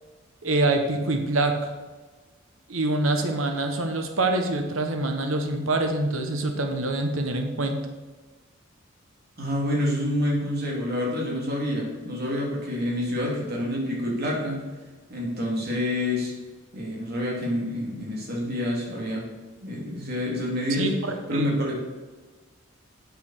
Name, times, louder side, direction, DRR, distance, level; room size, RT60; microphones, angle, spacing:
voice 1, 0.4-1.7 2.7-7.8 20.8-21.5, right 2 dB, 85° right, 5 dB, 1.2 m, -25 dB
voice 2, 9.4-14.6 15.1-16.3 16.7-19.2 19.6-20.9 21.3-21.7, left 1 dB, 50° right, -2 dB, 3.1 m, -27 dB
8.2 x 7.0 x 6.6 m, 1.3 s
head